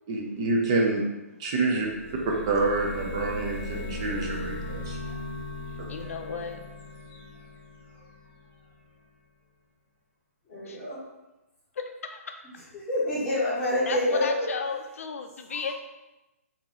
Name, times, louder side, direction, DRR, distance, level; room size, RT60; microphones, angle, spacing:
voice 1, 0.1-1.0 1.4-1.9 2.5-5.0, right 3 dB, 20° right, 0 dB, 0.4 m, -27 dB
sound 1, 1.7-8.4, left 1 dB, 40° left, 0.9 m, -37 dB
voice 2, 5.9-6.6 10.7-10.8 11.8-12.5 13.9-15.7, left 5 dB, 60° left, 5 dB, 0.4 m, -34 dB
voice 3, 10.4-11.0 12.7-14.5 15.5-15.7, left 1 dB, 5° left, -13 dB, 1.4 m, -29 dB
2.9 x 2.7 x 3.8 m, 1.0 s
hypercardioid pair, 170°, 8 cm